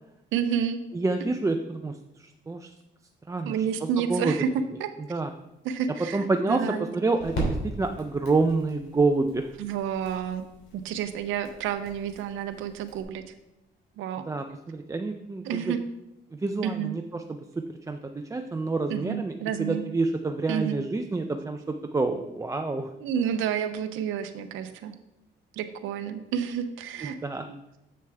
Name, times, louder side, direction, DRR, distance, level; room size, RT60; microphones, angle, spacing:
voice 1, 0.3-0.8 3.4-4.5 4.8-4.9 5.6-6.9 9.6-13.3 14.0-14.3 15.4-15.8 16.6-17.0 18.9-19.9 20.5-20.8 23.0-24.9 25.5-27.2, right 8 dB, 90° right, 8 dB, 0.5 m, -30 dB
voice 2, 0.9-2.7 3.3-4.3 5.1-5.3 6.1-6.7 6.9-9.5 14.3-15.7 16.3-17.4 17.9-19.3 19.6-22.9 27.0-27.5, right 3 dB, 15° right, 5 dB, 0.4 m, -28 dB
sound 1, 5.1-13.0, right 1 dB, 70° left, 2.9 m, -39 dB
7.7 x 6.7 x 3.4 m, 0.91 s
cardioid pair, 90°, 20 cm